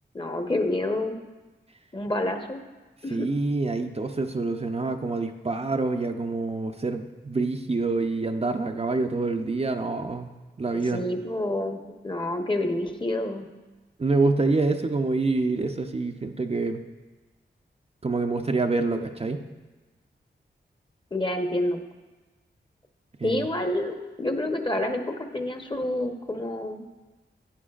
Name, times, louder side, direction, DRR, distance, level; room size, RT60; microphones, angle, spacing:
voice 1, 0.1-1.2 1.9-2.6 3.0-3.3 10.9-13.5 21.1-21.8 23.2-26.9, left 1 dB, 25° left, 5 dB, 1.0 m, -28 dB
voice 2, 3.1-10.3 10.6-11.0 14.0-16.8 18.0-19.4 23.2-23.5, right 3 dB, 35° right, 4 dB, 0.6 m, -26 dB
11.0 x 9.3 x 2.4 m, 1.2 s
cardioid pair, 50°, 19 cm